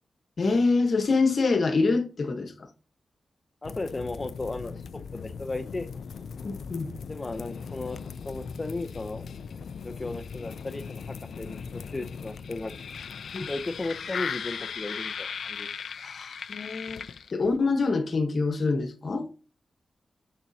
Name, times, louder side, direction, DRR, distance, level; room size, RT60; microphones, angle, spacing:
voice 1, 0.4-2.5 6.4-6.9 13.3-13.5 16.0-19.3, left 3 dB, 60° left, 1.1 m, -25 dB
sound 1, 3.6-17.5, left 6 dB, 80° left, 0.4 m, -38 dB
voice 2, 3.6-5.9 7.1-9.2 9.8-12.7 13.5-15.7, left 2 dB, 30° left, 0.6 m, -35 dB
7.2 x 6.0 x 2.8 m
cardioid pair, 70°, 0 cm